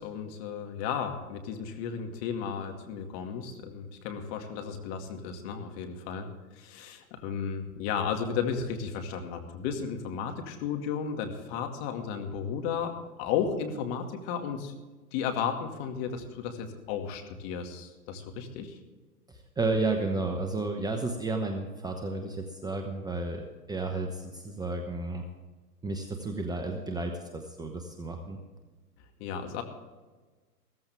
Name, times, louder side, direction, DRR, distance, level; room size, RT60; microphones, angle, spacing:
voice 1, 0.0-6.3 6.5-12.9 13.2-14.8 15.1-18.8 29.2-29.6, left 7 dB, 40° left, 5 dB, 2.2 m, -34 dB
voice 2, 19.3-25.2 25.8-28.4, right 3 dB, 10° right, 4 dB, 0.9 m, -32 dB
16.0 x 14.5 x 3.5 m, 1.3 s
hypercardioid pair, 120°, 48 cm